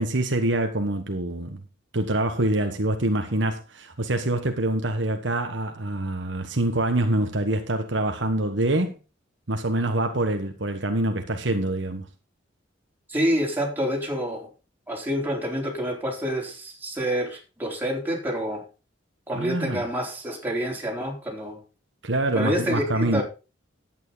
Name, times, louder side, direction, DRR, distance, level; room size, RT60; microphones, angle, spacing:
voice 1, 0.0-1.6 1.9-9.0 9.5-12.1 19.3-19.8 22.0-23.2, right 1 dB, 70° right, 1.3 m, -25 dB
voice 2, 13.1-14.5 14.9-18.6 19.3-21.6 22.3-23.2, equal, 10° right, 4.1 m, -27 dB
11.0 x 9.2 x 4.0 m
head